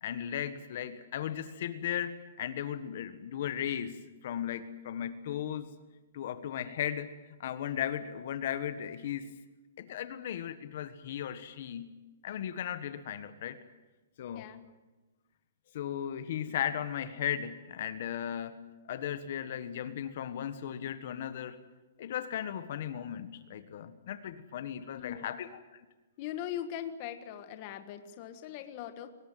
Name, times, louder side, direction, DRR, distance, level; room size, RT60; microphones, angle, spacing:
voice 1, 0.0-5.7 6.1-7.1 7.4-9.3 9.8-13.6 14.2-14.6 15.7-21.6 22.0-25.6, left 10 dB, 45° left, 11 dB, 1.5 m, -36 dB
voice 2, 24.9-25.4 26.2-29.1, left 10 dB, 30° left, 9 dB, 1.6 m, -40 dB
24.0 x 20.0 x 9.2 m, 1.1 s
hypercardioid pair, 175°, 0 cm